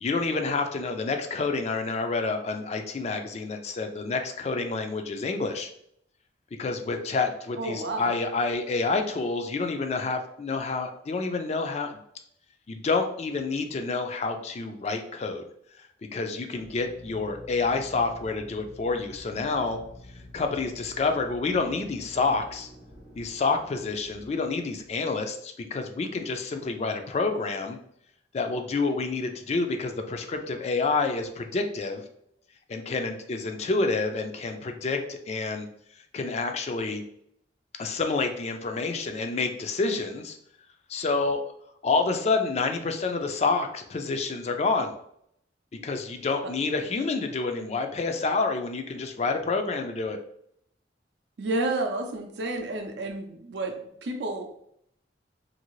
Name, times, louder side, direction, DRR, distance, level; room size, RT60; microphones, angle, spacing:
voice 1, 0.0-5.7 6.6-12.0 12.7-15.4 16.1-19.8 20.3-22.7 23.2-27.8 28.3-32.0 32.7-35.7 36.1-37.0 37.8-40.4 40.9-41.4 41.8-44.9 45.8-50.2, left 3 dB, 35° left, 6 dB, 0.3 m, -28 dB
voice 2, 7.6-8.1 51.4-54.5, right 2 dB, 70° right, 4 dB, 0.5 m, -30 dB
Drill, 16.5-25.1, left 1 dB, 85° left, 1.2 m, -48 dB
2.7 x 2.6 x 3.0 m, 0.70 s
head